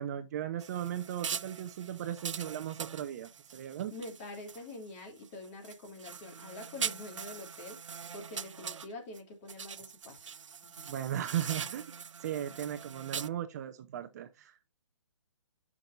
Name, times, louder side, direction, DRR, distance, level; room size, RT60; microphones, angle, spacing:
voice 1, 0.0-3.9 10.9-11.9 12.2-14.7, right 10 dB, 35° right, 0.7 m, -37 dB
sound 1, 0.6-4.8 5.2-9.2 9.5-13.3, right 7 dB, 85° right, 0.5 m, -42 dB
voice 2, 3.9-7.8 8.1-10.2 10.6-10.9 12.4-12.5, left 2 dB, 30° left, 2.9 m, -46 dB
13.0 x 6.0 x 2.6 m
hypercardioid pair, 150°, 16 cm